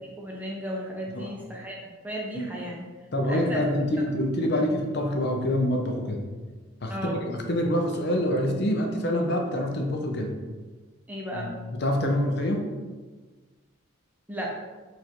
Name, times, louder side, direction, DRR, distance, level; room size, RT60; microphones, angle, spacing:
voice 1, 0.2-1.8 2.0-2.8 3.3-3.6 4.0-4.1 4.5-4.6 6.9-7.2 11.1-11.5 14.3-14.5, equal, 10° right, -2 dB, 0.6 m, -34 dB
voice 2, 3.1-6.2 6.8-10.3 11.3-11.5 11.8-12.6, left 1 dB, 50° left, 2 dB, 0.6 m, -26 dB
4.7 x 2.6 x 4.3 m, 1.3 s
head